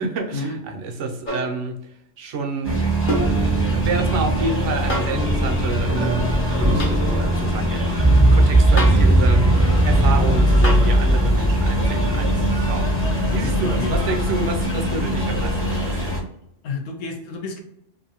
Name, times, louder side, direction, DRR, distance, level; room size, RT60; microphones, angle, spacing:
voice 1, 0.0-1.8 2.2-2.8 3.4-16.2, right 3 dB, 75° right, 3 dB, 1.0 m, -28 dB
sound 1, 1.3-1.6 3.1-3.4 4.9-5.2 6.8-7.0 8.8-9.1 10.6-11.0 12.7-12.8, equal, 50° left, 0.8 m, -27 dB
sound 2, 2.6-16.2, equal, 15° left, 0.7 m, -24 dB
sound 3, 3.1-14.3, right 1 dB, 25° right, 0.4 m, -20 dB
voice 2, 13.8-14.2 16.6-17.6, left 4 dB, 85° left, 4 dB, 1.0 m, -30 dB
2.6 x 2.6 x 2.7 m, 0.75 s
omnidirectional pair, 1.3 m